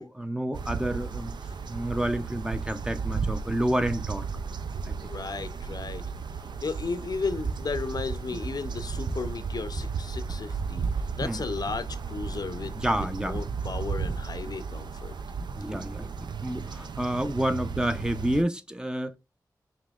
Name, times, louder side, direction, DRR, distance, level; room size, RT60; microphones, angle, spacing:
voice 1, 0.0-1.3 1.7-4.2 4.8-4.9 8.3-8.4 11.2-11.4 12.7-13.4 15.5-16.1 16.4-19.2, right 1 dB, 10° right, 0.5 m, -29 dB
sound 1, 0.5-18.4, right 5 dB, 80° right, 0.4 m, -34 dB
voice 2, 5.0-6.0 6.6-10.9 11.2-12.7 13.2-15.1, left 4 dB, 60° left, 0.5 m, -34 dB
Run, 7.4-14.5, right 3 dB, 60° right, 1.2 m, -39 dB
5.1 x 2.9 x 2.3 m
wide cardioid pair, 60°, 8 cm